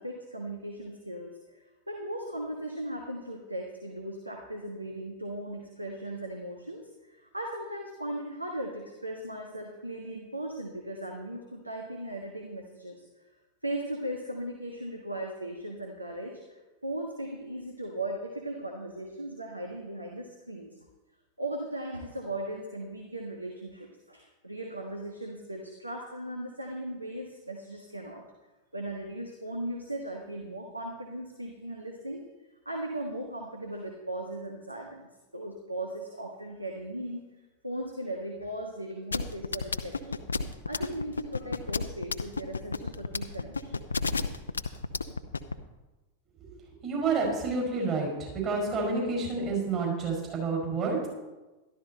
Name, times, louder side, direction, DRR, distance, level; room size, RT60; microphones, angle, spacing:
voice 1, 0.0-1.6 1.9-13.0 13.6-20.7 21.4-28.2 28.7-32.2 32.6-35.1 35.3-37.3 37.6-40.2 40.7-43.8, right 1 dB, 85° right, 2 dB, 1.4 m, -38 dB
sound 1, 39.1-45.5, left 4 dB, 75° left, 0.7 m, -30 dB
voice 2, 46.8-51.1, right 4 dB, 30° right, 0 dB, 5.0 m, -29 dB
13.0 x 12.0 x 4.2 m, 1.1 s
figure-of-eight pair, 90°, 0 cm